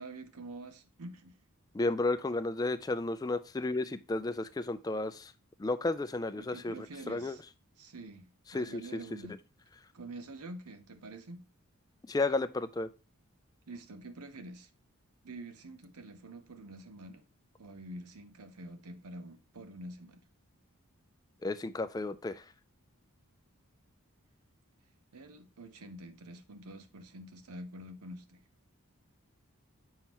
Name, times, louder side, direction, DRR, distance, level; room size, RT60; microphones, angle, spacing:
voice 1, 0.0-1.4 6.4-7.4 7.8-9.4 9.9-11.5 13.7-14.7 15.2-17.2 17.6-20.2 25.1-28.4, right 2 dB, 85° right, 0.8 m, -47 dB
voice 2, 1.7-5.3 5.6-7.4 8.5-9.0 12.1-12.9 21.4-22.4, left 2 dB, 15° left, 0.3 m, -33 dB
7.2 x 5.6 x 2.9 m
head